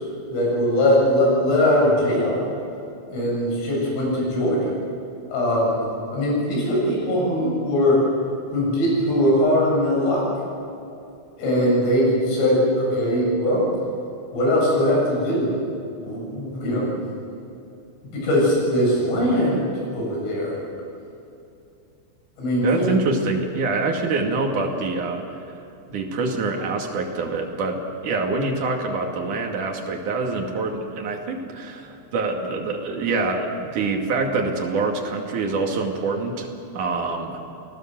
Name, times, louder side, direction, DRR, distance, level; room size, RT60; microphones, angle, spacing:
voice 1, 0.3-2.5 3.1-4.7 5.3-5.8 6.1-8.0 8.5-10.2 11.4-13.7 14.3-15.5 16.0-17.0 18.1-20.6 22.4-23.0, left 1 dB, 80° left, -3 dB, 10.0 m, -21 dB
voice 2, 22.6-25.2 25.9-27.8 28.0-36.5 36.7-37.4, right 3 dB, 50° right, 1 dB, 3.3 m, -25 dB
29.5 x 19.0 x 7.7 m, 2.7 s
omnidirectional pair, 5.6 m